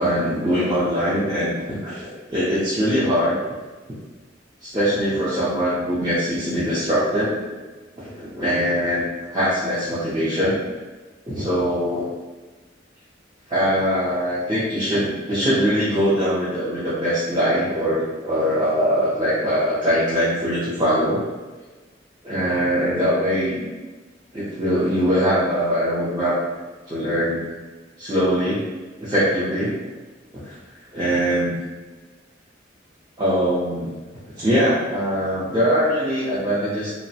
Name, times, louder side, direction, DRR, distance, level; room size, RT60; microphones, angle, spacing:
voice 1, 0.0-3.4 4.6-7.4 8.0-10.6 11.3-12.1 13.5-21.2 22.2-23.7 24.3-26.4 26.9-27.4 28.0-28.7 29.0-29.7 30.3-30.5 30.9-31.6 33.2-33.9 34.4-36.9, equal, 20° right, -12 dB, 0.5 m, -22 dB
2.4 x 2.0 x 2.6 m, 1.3 s
head